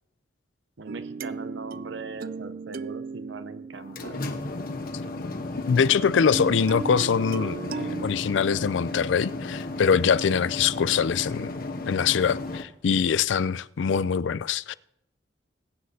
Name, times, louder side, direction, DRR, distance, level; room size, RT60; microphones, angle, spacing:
voice 1, 0.8-4.2, right 3 dB, 75° right, 0.7 m, -40 dB
sound 1, 0.9-5.1 6.3-8.1, right 5 dB, 50° right, 0.3 m, -36 dB
sound 2, 3.7-12.6, left 2 dB, 50° left, 1.0 m, -34 dB
voice 2, 5.7-7.6 8.0-11.5 11.9-14.7, left 6 dB, 80° left, 0.4 m, -23 dB
21.5 x 9.6 x 2.7 m
head